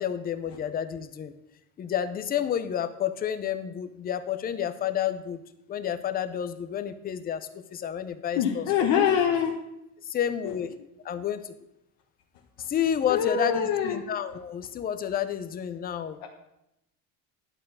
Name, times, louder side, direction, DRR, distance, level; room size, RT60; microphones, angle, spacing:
voice 1, 0.0-1.3 1.8-5.4 5.7-8.7 10.0-10.7 11.0-11.4 12.6-16.2, left 9 dB, 25° left, 10 dB, 0.5 m, -30 dB
voice 2, 8.4-9.5 13.1-14.0 16.2-16.3, left 8 dB, 80° left, 0 dB, 1.3 m, -24 dB
11.0 x 4.6 x 7.4 m, 0.85 s
cardioid pair, 175°, 37 cm